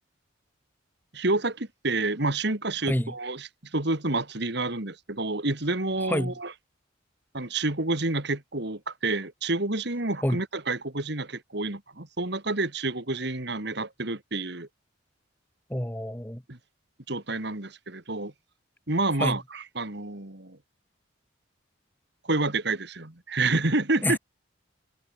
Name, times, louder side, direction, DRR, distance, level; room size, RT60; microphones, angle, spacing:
voice 1, 1.1-6.5 7.3-14.7 16.5-16.6 17.1-18.3 18.9-20.6 22.3-24.2, right 2 dB, 55° right, 2.4 m, -29 dB
voice 2, 15.7-16.4 19.2-19.4 24.0-24.2, left 1 dB, 10° left, 1.7 m, -27 dB
head